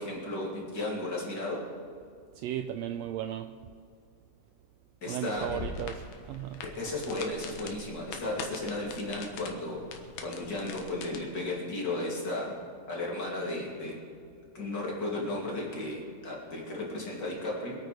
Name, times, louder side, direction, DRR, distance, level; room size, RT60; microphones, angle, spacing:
voice 1, 0.0-1.7 5.0-5.6 6.6-9.9 10.2-12.6 12.9-14.0 14.5-17.8, left 2 dB, 35° left, 3.0 m, -34 dB
voice 2, 2.4-3.6 5.1-6.8, right 11 dB, 90° right, 1.5 m, -36 dB
sound 1, 5.4-11.2, left 5 dB, 70° left, 2.6 m, -43 dB
24.5 x 9.0 x 4.9 m
omnidirectional pair, 3.5 m